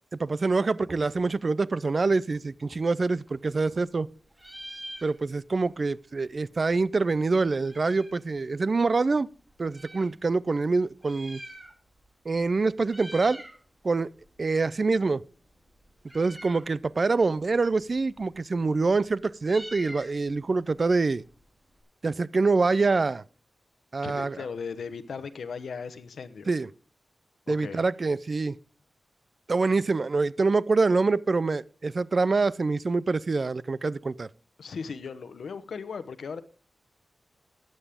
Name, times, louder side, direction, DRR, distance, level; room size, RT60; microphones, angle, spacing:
voice 1, 0.2-4.1 5.0-9.3 9.6-11.4 12.3-13.4 13.8-14.1 14.4-15.2 16.1-21.2 22.0-23.2 23.9-24.4 26.5-26.7 27.5-28.6 29.5-34.3, right 3 dB, 40° right, 0.4 m, -25 dB
Meow, 3.2-4.0 4.3-5.6 5.9-6.0 6.1-8.3 8.9-10.1 10.9-12.1 12.3-12.6 12.8-13.6 13.9-21.8, right 1 dB, 10° right, 2.3 m, -47 dB
voice 2, 24.0-26.5 27.5-27.9 34.6-36.4, left 5 dB, 90° left, 0.9 m, -37 dB
13.5 x 9.2 x 3.6 m
wide cardioid pair, 125°, 0 cm